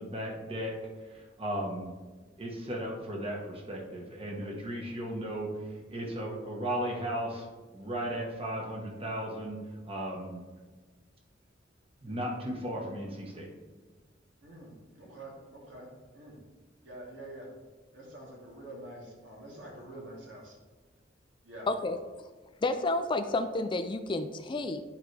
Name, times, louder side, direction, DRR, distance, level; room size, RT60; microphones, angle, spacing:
voice 1, 0.0-2.0 2.4-7.5 7.7-10.4 12.0-13.5, right 1 dB, 30° right, -1 dB, 1.3 m, -36 dB
voice 2, 14.4-16.4 16.8-17.5 17.9-20.6 21.4-21.7, right 1 dB, 85° right, -3 dB, 2.4 m, -46 dB
voice 3, 21.7-22.0 22.6-24.8, left 2 dB, 25° left, 9 dB, 0.4 m, -30 dB
10.5 x 4.6 x 3.3 m, 1.3 s
head